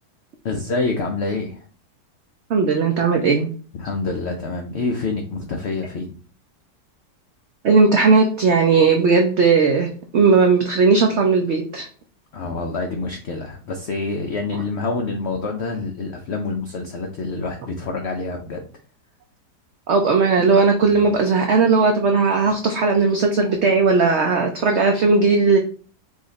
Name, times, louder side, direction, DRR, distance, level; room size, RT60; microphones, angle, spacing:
voice 1, 0.4-1.6 3.7-6.2 12.3-18.6 21.0-21.1, left 3 dB, 80° left, 3 dB, 0.5 m, -27 dB
voice 2, 2.5-3.5 7.6-11.9 19.9-25.6, right 4 dB, 85° right, 3 dB, 0.6 m, -17 dB
4.9 x 2.5 x 4.0 m, 0.42 s
omnidirectional pair, 1.8 m